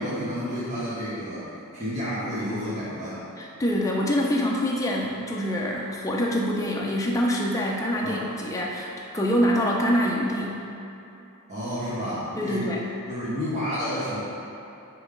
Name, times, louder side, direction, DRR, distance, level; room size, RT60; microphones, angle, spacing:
voice 1, 0.0-3.2 8.0-8.2 11.5-12.7 13.1-14.2, equal, 30° right, -12 dB, 1.3 m, -30 dB
voice 2, 3.4-10.6 12.4-12.8, equal, 15° left, -3 dB, 0.5 m, -25 dB
6.7 x 3.1 x 5.1 m, 2.9 s
head